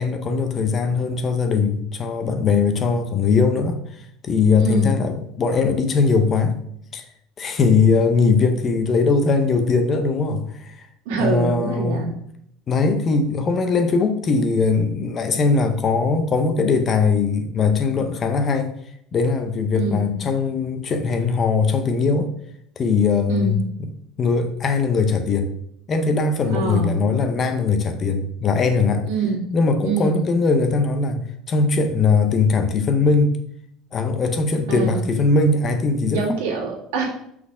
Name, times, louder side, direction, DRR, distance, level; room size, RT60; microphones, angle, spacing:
voice 1, 0.0-6.6 6.9-7.0 7.4-10.9 11.1-12.1 12.7-18.7 19.1-22.3 22.8-23.9 24.2-25.5 25.9-29.1 29.5-33.4 33.9-36.2, left 4 dB, 25° left, 8 dB, 0.6 m, -20 dB
voice 2, 4.6-4.9 11.1-12.1 19.7-20.2 23.3-23.6 26.4-27.0 29.1-29.5 29.8-30.2 34.7-35.1 36.1-37.0, right 4 dB, 80° right, -1 dB, 2.2 m, -25 dB
6.0 x 4.1 x 4.8 m, 0.71 s
cardioid pair, 175°, 0 cm